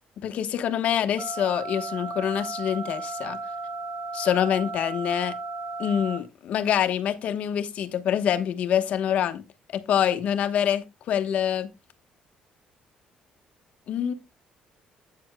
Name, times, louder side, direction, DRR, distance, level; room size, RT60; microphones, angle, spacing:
voice 1, 0.2-3.4 4.1-5.3 5.8-9.4 9.7-11.7 13.9-14.1, left 9 dB, 55° left, 1.1 m, -25 dB
sound 1, 1.2-6.2, right 3 dB, 55° right, 1.7 m, -35 dB
12.5 x 8.6 x 2.2 m
cardioid pair, 160°, 3 cm